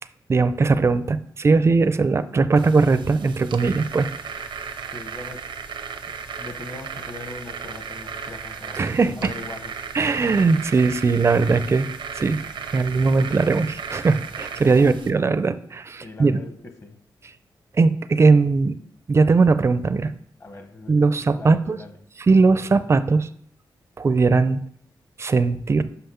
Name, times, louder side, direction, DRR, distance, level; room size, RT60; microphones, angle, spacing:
voice 1, 0.3-4.1 8.8-9.3 9.9-11.9 12.1-12.4 12.7-16.4 17.8-18.8 19.1-20.1 20.9-21.8 22.2-23.3 24.0-24.6 25.2-25.8, right 4 dB, 35° right, 13 dB, 0.4 m, -19 dB
sound 1, 2.5-15.1, right 6 dB, 85° right, 0.6 m, -35 dB
voice 2, 4.9-5.5 6.1-8.8 9.2-9.8 14.6-14.9 16.0-17.0 20.4-22.0, left 2 dB, 35° left, 6 dB, 1.1 m, -41 dB
5.7 x 5.6 x 5.6 m, 0.65 s
wide cardioid pair, 105°, 8 cm